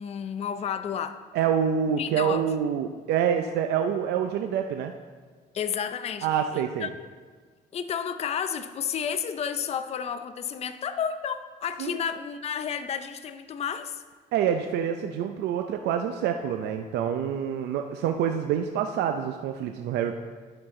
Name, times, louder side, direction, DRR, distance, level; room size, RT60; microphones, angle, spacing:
voice 1, 0.0-1.2 2.0-2.4 5.5-6.3 6.5-6.9 7.7-14.0, left 7 dB, 40° left, 10 dB, 0.5 m, -31 dB
voice 2, 1.3-4.9 6.2-6.9 11.8-12.0 14.3-20.2, right 8 dB, 80° right, 5 dB, 0.5 m, -27 dB
12.0 x 6.0 x 3.7 m, 1.5 s
cardioid pair, 110°, 17 cm